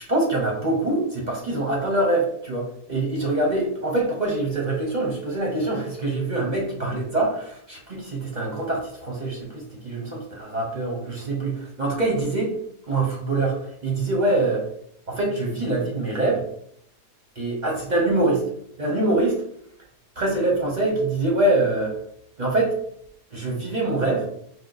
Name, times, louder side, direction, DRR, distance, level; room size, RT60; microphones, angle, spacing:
voice 1, 0.1-12.6 12.9-14.7 15.1-16.4 17.4-18.5 18.8-19.4 20.2-22.0 22.4-22.8 23.3-24.3, right 2 dB, 45° right, -2 dB, 0.6 m, -24 dB
4.9 x 2.0 x 3.8 m, 0.68 s
omnidirectional pair, 1.7 m